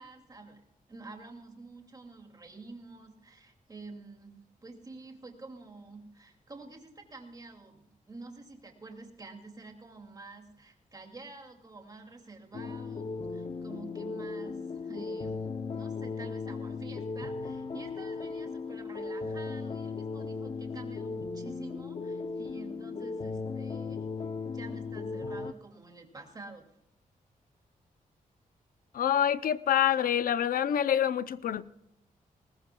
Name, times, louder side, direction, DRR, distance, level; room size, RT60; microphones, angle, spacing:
voice 1, 0.0-4.4 4.6-15.4 15.7-24.1 24.5-26.7, right 3 dB, 25° right, 2.4 m, -48 dB
sound 1, 12.5-25.5, left 4 dB, 40° left, 0.6 m, -37 dB
voice 2, 28.9-31.6, left 10 dB, 85° left, 0.6 m, -26 dB
20.5 x 19.5 x 2.3 m
wide cardioid pair, 160°, 14 cm